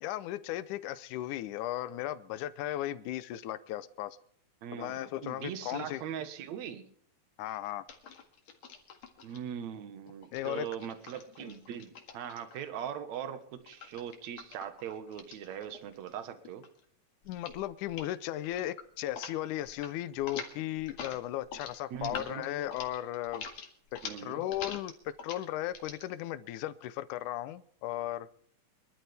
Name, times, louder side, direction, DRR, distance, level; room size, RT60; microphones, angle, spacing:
voice 1, 0.0-4.2 4.7-6.0 7.4-7.8 10.3-10.7 17.3-23.4 23.9-28.3, left 13 dB, 75° left, 14 dB, 2.1 m, -36 dB
voice 2, 4.6-6.8 9.2-16.6 21.9-22.5 24.0-24.4, right 9 dB, 60° right, 9 dB, 2.5 m, -40 dB
sound 1, 7.9-9.4 10.2-12.8 13.7-16.2 16.5-16.8 17.2-17.6 17.9-18.1 18.4-19.3 19.6-19.9 20.2-26.0, left 6 dB, 55° left, 2.9 m, -45 dB
24.0 x 12.5 x 3.5 m, 0.63 s
omnidirectional pair, 3.9 m